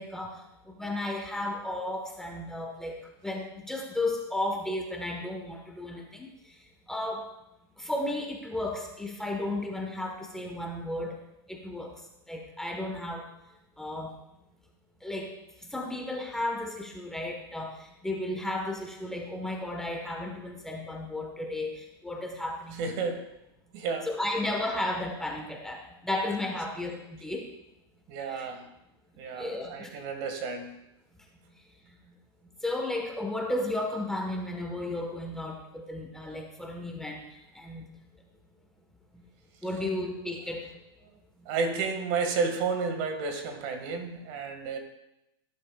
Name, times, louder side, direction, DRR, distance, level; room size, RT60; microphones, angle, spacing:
voice 1, 0.0-6.3 6.9-7.3 7.8-11.2 11.5-12.0 12.3-13.3 13.8-14.1 15.0-22.9 24.0-27.5 28.3-28.5 29.4-29.9 32.6-37.9 39.1-39.2 39.6-40.7, left 1 dB, 5° left, 1 dB, 1.4 m, -34 dB
voice 2, 22.8-23.3 23.7-24.1 28.1-28.7 29.2-30.7 41.5-44.8, right 4 dB, 50° right, 5 dB, 2.0 m, -31 dB
18.0 x 11.0 x 2.4 m, 0.87 s
supercardioid pair, 135°, 14 cm